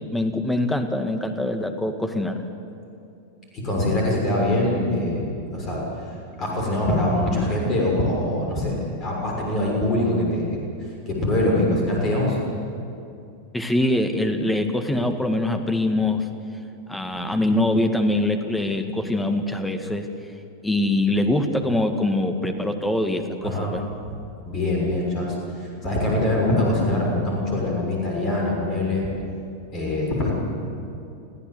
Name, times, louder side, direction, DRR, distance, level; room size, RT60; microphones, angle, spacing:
voice 1, 0.1-2.4 13.5-16.2 16.9-20.1 20.6-23.8, left 1 dB, 5° left, 6 dB, 1.8 m, -23 dB
voice 2, 3.5-5.3 5.5-5.8 6.4-10.5 11.1-12.4 23.4-23.8 24.0-24.2 24.5-29.1 29.7-30.3, left 1 dB, 30° left, -2 dB, 6.6 m, -23 dB
25.0 x 15.5 x 8.0 m, 2.6 s
figure-of-eight pair, 90°, 0 cm